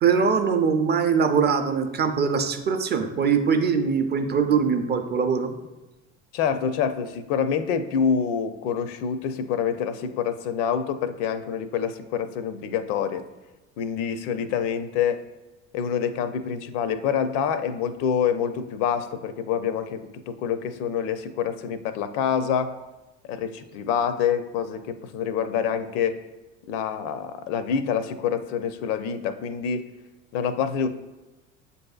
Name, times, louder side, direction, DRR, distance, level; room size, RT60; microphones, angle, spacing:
voice 1, 0.0-5.6, right 6 dB, 25° right, 6 dB, 0.4 m, -22 dB
voice 2, 6.3-13.2 13.8-15.2 15.7-22.7 23.3-26.2 26.7-29.8 30.3-30.9, left 7 dB, 60° left, 11 dB, 0.5 m, -26 dB
7.4 x 2.7 x 2.3 m, 1.1 s
hypercardioid pair, 70°, 38 cm